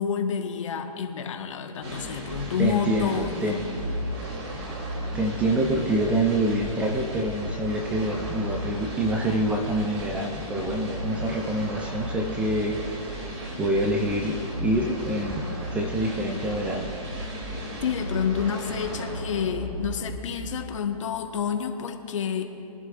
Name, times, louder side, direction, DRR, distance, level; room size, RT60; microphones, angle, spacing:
voice 1, 0.0-3.5 17.8-22.4, left 7 dB, 50° left, 4 dB, 1.4 m, -29 dB
sound 1, 1.8-20.8, equal, 40° right, 3.1 m, -35 dB
voice 2, 2.6-3.6 5.1-13.2 13.6-16.9, right 1 dB, 5° right, 2 dB, 0.5 m, -26 dB
23.5 x 11.0 x 2.5 m, 2.9 s
hypercardioid pair, 150°, 20 cm